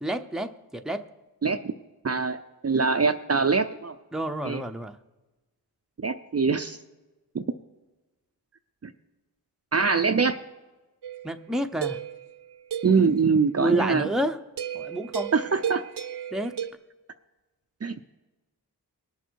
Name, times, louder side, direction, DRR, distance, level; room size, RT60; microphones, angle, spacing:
voice 1, 0.0-1.0 4.1-5.0 11.2-12.0 13.6-14.4 14.7-15.3 16.3-16.5, right 1 dB, ahead, 6 dB, 0.8 m, -29 dB
voice 2, 1.4-1.7 2.0-3.9 4.4-4.6 6.0-6.8 7.3-7.4 8.8-8.9 9.7-10.4 12.8-14.1 15.3-15.8 17.8-18.0, right 5 dB, 35° right, 8 dB, 0.6 m, -23 dB
sound 1, 11.0-13.1 14.6-16.7, right 9 dB, 70° right, 0.8 m, -34 dB
20.0 x 6.7 x 4.6 m, 1.1 s
cardioid pair, 45°, 41 cm